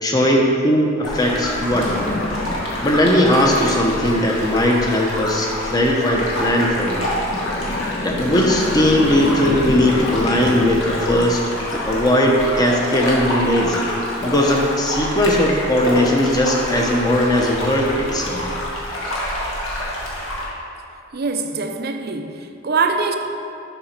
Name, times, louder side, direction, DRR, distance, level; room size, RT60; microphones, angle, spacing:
voice 1, 0.0-1.9 2.8-7.0 8.0-11.4 11.7-13.8 14.2-18.4, left 1 dB, 20° left, 0.8 m, -18 dB
sound 1, 1.0-20.4, left 1 dB, 75° left, 1.6 m, -27 dB
sound 2, 1.7-4.5 7.3-12.7, left 2 dB, 35° left, 0.4 m, -30 dB
voice 2, 21.1-23.2, right 4 dB, 50° right, 0.5 m, -23 dB
7.3 x 5.0 x 5.8 m
head